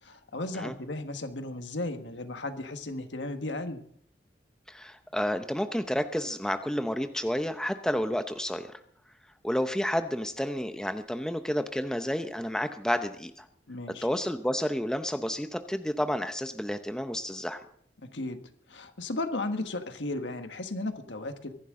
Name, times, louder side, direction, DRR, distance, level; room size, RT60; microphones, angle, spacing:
voice 1, 0.0-3.8 13.7-14.1 18.1-18.4 18.7-21.5, left 2 dB, 90° left, 7 dB, 1.5 m, -35 dB
voice 2, 4.7-8.7 9.4-13.5 14.0-17.6, equal, 5° left, 8 dB, 0.7 m, -30 dB
24.0 x 11.0 x 3.8 m, 0.64 s
head